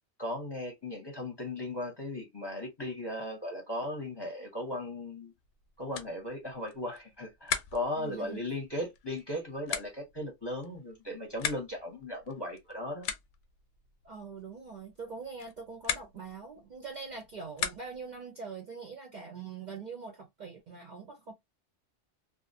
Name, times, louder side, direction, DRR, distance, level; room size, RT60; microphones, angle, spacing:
voice 1, 0.2-5.3 5.8-13.1, left 1 dB, 25° left, 0.7 m, -37 dB
sound 1, 5.4-18.2, left 8 dB, 90° left, 0.9 m, -41 dB
voice 2, 8.0-8.4 14.0-21.3, right 5 dB, 55° right, 0.5 m, -43 dB
2.4 x 2.0 x 2.6 m
omnidirectional pair, 1.2 m